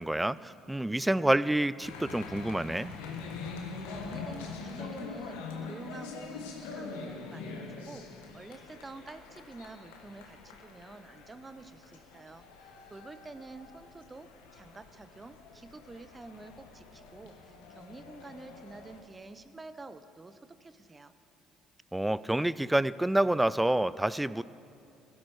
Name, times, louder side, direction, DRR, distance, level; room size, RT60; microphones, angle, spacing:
voice 1, 0.0-2.9 21.9-24.4, right 1 dB, 10° right, 18 dB, 0.3 m, -28 dB
sound 1, 1.8-19.0, left 4 dB, 85° left, 1.4 m, -44 dB
voice 2, 3.9-5.4 5.7-21.2, right 3 dB, 25° right, 12 dB, 0.8 m, -49 dB
17.0 x 12.0 x 4.9 m, 2.6 s
hypercardioid pair, 65°, 0 cm